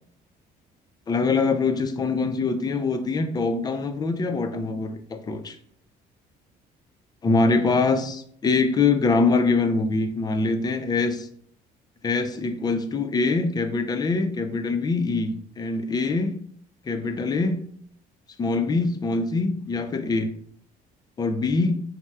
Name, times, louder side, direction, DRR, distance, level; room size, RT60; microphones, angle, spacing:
voice 1, 1.1-5.6 7.2-11.3 12.0-16.3 16.9-17.6 18.4-20.3 21.2-21.8, left 3 dB, 25° left, 7 dB, 0.4 m, -24 dB
4.1 x 2.0 x 2.3 m, 0.63 s
cardioid pair, 110°, 17 cm